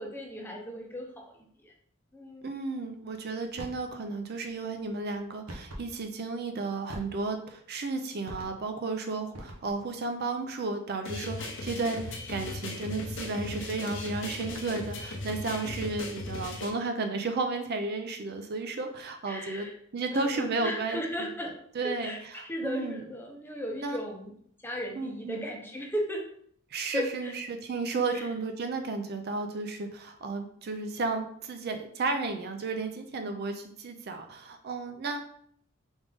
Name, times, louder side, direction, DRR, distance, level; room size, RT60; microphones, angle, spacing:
voice 1, 0.0-1.3 1.6-1.7 2.1-2.5 19.3-19.8 20.1-21.5 21.8-22.2 22.4-24.3 24.6-26.2 26.9-27.3 28.1-28.3, equal, 10° left, 1 dB, 0.7 m, -36 dB
voice 2, 2.4-19.7 19.9-23.0 23.8-24.0 25.0-25.4 26.7-35.3, right 3 dB, 50° right, 6 dB, 0.5 m, -33 dB
sound 1, 3.6-3.9 5.5-5.9 6.9-7.4 8.3-8.7 9.3-9.9, right 1 dB, 85° right, 0.9 m, -43 dB
sound 2, 11.1-16.7, left 2 dB, 60° left, 0.7 m, -37 dB
3.8 x 3.5 x 3.4 m, 0.64 s
head